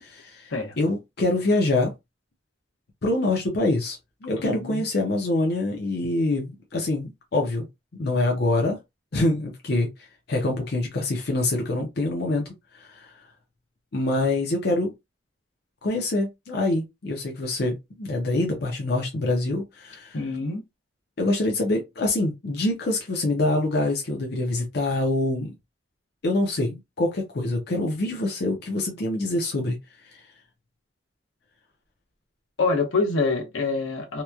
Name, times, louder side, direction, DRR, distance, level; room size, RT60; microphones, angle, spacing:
voice 1, 0.0-1.9 3.0-4.0 4.2-7.7 7.9-8.8 9.1-9.9 10.3-12.5 12.7-13.1 13.9-14.9 15.8-20.2 21.2-25.5 26.2-29.8 30.1-30.2, left 2 dB, 55° left, 0.6 m, -25 dB
voice 2, 4.4-4.8 20.1-20.6 32.6-34.2, left 3 dB, 85° left, 0.8 m, -26 dB
2.9 x 2.1 x 2.3 m
head